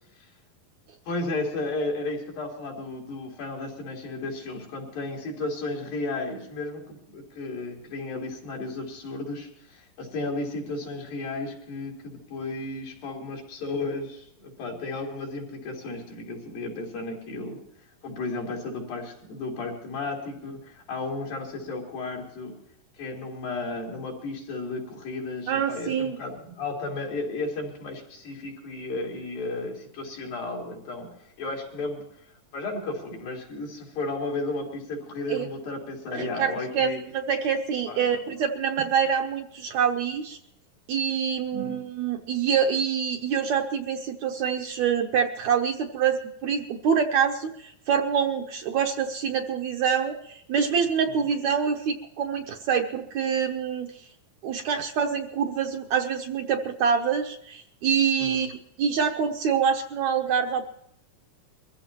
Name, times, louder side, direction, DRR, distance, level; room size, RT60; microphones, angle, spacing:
voice 1, 1.1-17.6 18.0-22.6 23.0-32.1 32.5-37.0 37.9-38.2 41.5-41.8 51.1-51.2 58.2-58.5, left 2 dB, 80° left, -1 dB, 5.1 m, -34 dB
voice 2, 25.5-26.2 35.3-35.5 36.1-40.4 40.9-53.9 54.4-60.7, right 7 dB, 70° right, 4 dB, 1.8 m, -26 dB
23.0 x 15.0 x 2.9 m, 0.71 s
omnidirectional pair, 4.0 m